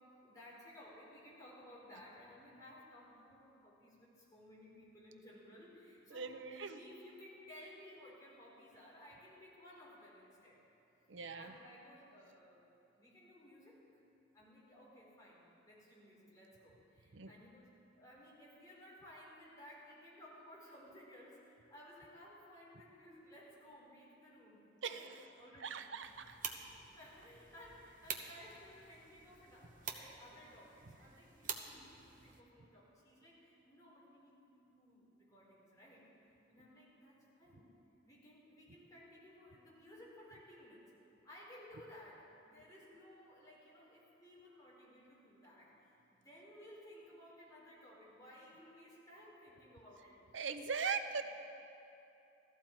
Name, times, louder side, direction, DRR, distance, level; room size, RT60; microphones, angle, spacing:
voice 1, 0.0-10.6 11.3-12.6 13.0-13.8 14.3-17.7 17.9-26.4 27.0-37.7 38.0-40.9 41.2-50.2, left 1 dB, 20° left, -6 dB, 3.8 m, -58 dB
voice 2, 6.1-6.8 11.1-11.5 17.1-17.3 24.8-25.2 25.6-26.6 50.3-51.2, right 5 dB, 70° right, 8 dB, 0.7 m, -40 dB
sound 1, 26.0-32.4, right 6 dB, 45° right, 1.0 m, -48 dB
15.0 x 14.0 x 4.4 m, 2.8 s
head